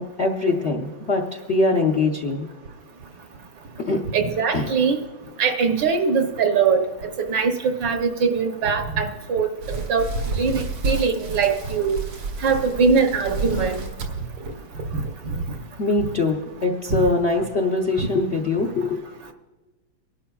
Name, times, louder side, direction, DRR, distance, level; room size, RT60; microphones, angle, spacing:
voice 1, 0.0-2.5 3.8-4.0 4.5-4.7 15.8-19.0, left 3 dB, 55° left, 2 dB, 0.7 m, -23 dB
voice 2, 4.1-5.0 5.4-6.8 7.2-10.1 10.4-12.0 12.4-13.8 14.9-15.0 15.3-15.4 18.0-18.1, right 5 dB, 65° right, 5 dB, 1.4 m, -22 dB
sound 1, 9.6-15.3 15.7-16.0 16.5-16.6 17.1-17.2, right 3 dB, 85° right, 2.4 m, -30 dB
24.5 x 11.5 x 2.3 m, 1.2 s
omnidirectional pair, 2.3 m